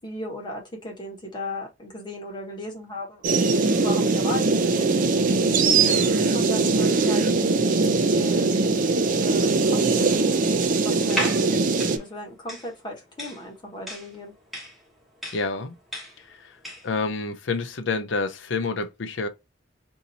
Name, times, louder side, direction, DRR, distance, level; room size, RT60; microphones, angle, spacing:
voice 1, 0.0-3.2 3.7-5.1 6.3-7.3 8.0-8.5 8.7-10.1 10.8-11.3 11.9-14.3, left 1 dB, 25° left, 1.2 m, -36 dB
sound 1, 3.2-12.0, right 3 dB, 45° right, 0.4 m, -21 dB
voice 2, 5.8-6.2 15.3-15.7 16.3-16.6 16.8-19.3, left 3 dB, 70° left, 0.6 m, -28 dB
sound 2, 11.0-17.0, equal, ahead, 1.1 m, -35 dB
2.7 x 2.7 x 4.1 m
head